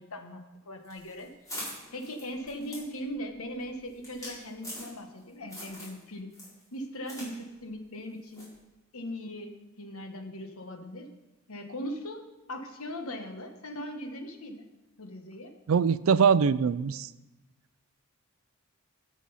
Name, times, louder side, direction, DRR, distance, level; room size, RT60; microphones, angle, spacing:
voice 1, 0.0-1.3 1.9-6.3 6.7-8.5 8.9-11.1 11.5-14.6 15.0-15.6, equal, 70° left, 5 dB, 1.3 m, -39 dB
sound 1, 0.8-5.2 5.5-6.0 6.3-7.3 7.6-7.7 8.3-8.6, equal, 15° left, 4.4 m, -43 dB
voice 2, 15.7-17.1, right 6 dB, 65° right, 16 dB, 0.4 m, -23 dB
12.5 x 6.3 x 5.6 m, 1.1 s
head